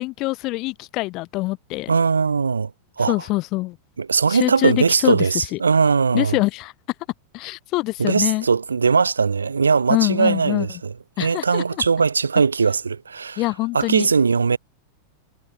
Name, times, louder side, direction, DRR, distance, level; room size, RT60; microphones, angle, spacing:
voice 1, 0.0-1.9 3.1-3.8 4.3-5.6 6.1-6.7 7.3-8.4 9.9-10.7 11.2-11.6 13.4-14.1, left 21 dB, 40° left, 1.2 m, -24 dB
voice 2, 1.9-2.7 3.0-3.1 4.0-6.4 8.0-10.9 11.2-13.4 13.7-14.6, right 5 dB, 75° right, 1.6 m, -20 dB
figure-of-eight pair, 90°, 0 cm